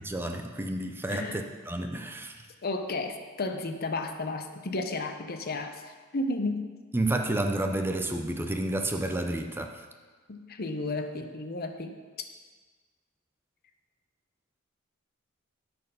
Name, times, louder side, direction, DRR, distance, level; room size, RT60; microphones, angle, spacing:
voice 1, 0.0-2.5 6.9-9.8, right 1 dB, 10° right, 4 dB, 0.5 m, -30 dB
voice 2, 1.1-1.4 2.6-6.7 10.3-12.0, left 2 dB, 50° left, 6 dB, 0.7 m, -33 dB
12.5 x 4.4 x 5.6 m, 1.4 s
head